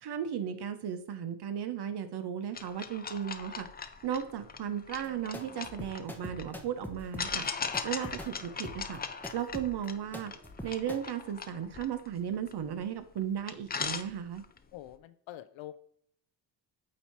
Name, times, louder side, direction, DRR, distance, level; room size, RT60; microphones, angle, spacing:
voice 1, 0.0-3.7 4.0-7.5 7.8-9.0 9.3-10.3 10.6-14.4, right 9 dB, 55° right, 9 dB, 1.0 m, -35 dB
sound 1, 2.5-6.5 7.2-12.8 13.2-13.3 13.5-14.6, left 5 dB, 20° left, 0.5 m, -39 dB
sound 2, 4.9-11.0, equal, 5° left, 0.9 m, -44 dB
voice 2, 14.7-15.8, left 13 dB, 75° left, 12 dB, 0.6 m, -45 dB
8.5 x 2.8 x 4.5 m, 0.64 s
cardioid pair, 80°, 47 cm